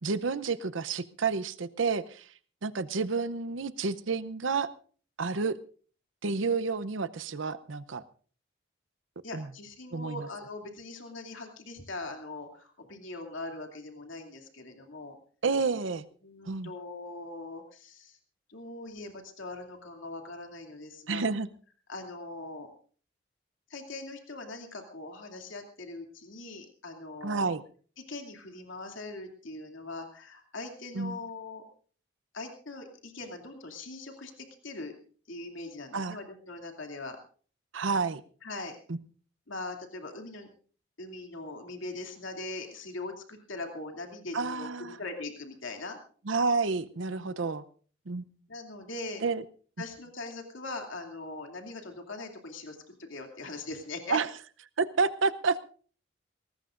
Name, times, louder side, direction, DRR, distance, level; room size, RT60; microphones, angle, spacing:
voice 1, 0.0-2.3 2.6-4.7 5.2-5.6 6.2-8.0 9.3-9.5 9.9-10.3 15.4-16.0 16.5-16.7 21.1-21.5 27.2-27.6 30.9-31.2 35.9-36.2 37.7-38.2 38.9-39.0 44.3-45.0 46.3-47.6 48.1-48.3 49.2-49.4 54.1-54.3 54.8-55.6, right 4 dB, 80° right, 16 dB, 0.7 m, -30 dB
voice 2, 9.2-15.2 16.2-18.2 18.5-21.2 21.9-22.7 23.7-27.6 28.1-31.6 32.3-34.9 35.3-37.2 38.4-38.8 39.5-40.5 41.0-46.0 47.1-47.5 48.5-49.2 49.8-54.2, left 2 dB, 80° left, 3 dB, 2.7 m, -41 dB
21.5 x 18.5 x 2.5 m, 0.42 s
head